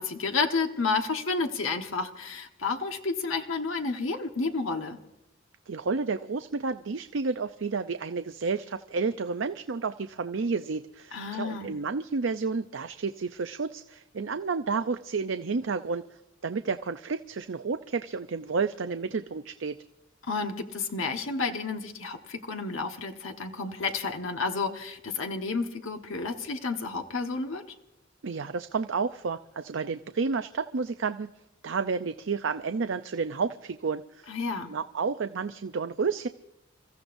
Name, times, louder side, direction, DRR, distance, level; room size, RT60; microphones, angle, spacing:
voice 1, 0.0-5.0 11.1-11.8 20.3-27.6 34.3-34.7, left 4 dB, 85° left, 5 dB, 1.3 m, -31 dB
voice 2, 5.7-16.0 16.4-19.8 28.2-31.3 31.6-34.3 34.7-36.3, right 4 dB, 65° right, 9 dB, 0.5 m, -31 dB
29.0 x 15.0 x 2.6 m, 0.92 s
head